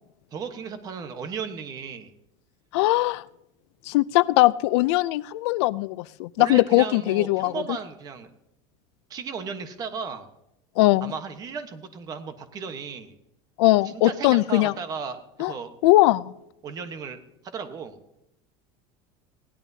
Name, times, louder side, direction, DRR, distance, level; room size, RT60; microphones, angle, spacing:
voice 1, 0.3-2.1 6.4-8.3 9.1-10.3 11.0-13.1 13.8-15.7 16.6-17.2 17.5-18.0, right 5 dB, 25° right, 8 dB, 1.1 m, -35 dB
voice 2, 2.7-3.2 3.9-7.5 10.8-11.1 13.6-14.7 15.4-15.5 15.8-16.3, left 19 dB, 85° left, 18 dB, 0.4 m, -20 dB
20.0 x 17.0 x 2.8 m, 0.85 s
cardioid pair, 170°, 14 cm